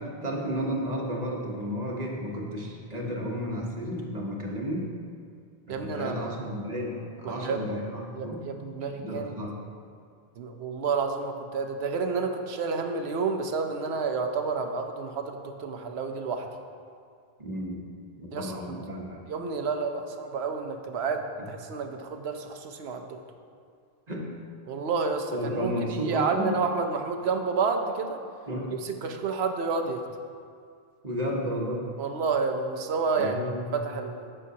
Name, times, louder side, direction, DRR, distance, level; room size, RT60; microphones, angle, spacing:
voice 1, 0.0-4.9 5.7-8.4 8.8-9.6 17.4-17.9 18.2-19.2 24.1-24.3 25.3-26.6 28.5-28.7 31.0-31.9 33.2-33.7, equal, 40° right, -2 dB, 1.2 m, -32 dB
voice 2, 5.7-6.4 7.2-7.6 8.1-9.3 10.4-16.5 18.3-18.8 19.3-23.2 24.7-28.2 28.8-30.0 32.0-34.3, right 4 dB, 85° right, 5 dB, 1.0 m, -30 dB
11.0 x 7.6 x 2.8 m, 2.2 s
omnidirectional pair, 1.0 m